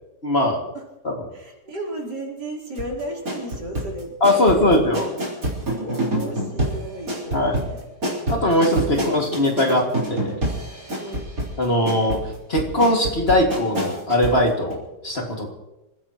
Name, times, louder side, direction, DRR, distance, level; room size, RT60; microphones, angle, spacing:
voice 1, 0.2-0.6 1.0-1.1 4.2-5.1 7.3-7.6 8.3-10.4 11.6-12.2 12.5-15.5, left 1 dB, 35° left, 1 dB, 2.5 m, -20 dB
voice 2, 1.3-4.6 5.8-7.8 11.0-11.3, right 1 dB, 80° right, -3 dB, 4.6 m, -34 dB
sound 1, 2.7-14.4 14.7-14.8, right 1 dB, 55° right, 4.6 m, -27 dB
27.5 x 15.5 x 3.1 m, 0.94 s
omnidirectional pair, 1.8 m